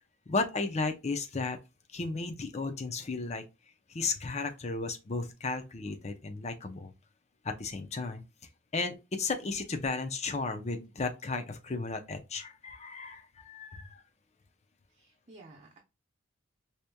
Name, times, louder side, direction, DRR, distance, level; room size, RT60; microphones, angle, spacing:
voice 1, 0.3-1.6 1.9-3.4 3.9-6.9 7.4-8.2 8.7-14.0, left 3 dB, 35° left, 0.6 m, -34 dB
voice 2, 14.9-15.8, right 2 dB, 35° right, 0.8 m, -54 dB
4.8 x 2.8 x 2.2 m
head